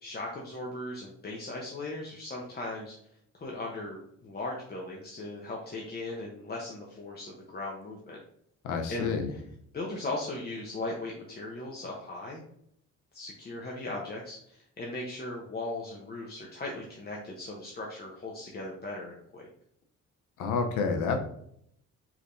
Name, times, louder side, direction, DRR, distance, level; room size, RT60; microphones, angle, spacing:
voice 1, 0.0-2.9 3.3-8.2 8.9-9.4 9.7-12.4 13.1-19.5, left 2 dB, 30° left, -3 dB, 0.9 m, -38 dB
voice 2, 8.6-9.3 20.4-21.2, left 5 dB, 85° left, 5 dB, 0.8 m, -29 dB
4.9 x 3.5 x 2.7 m, 0.70 s
cardioid pair, 90°, 30 cm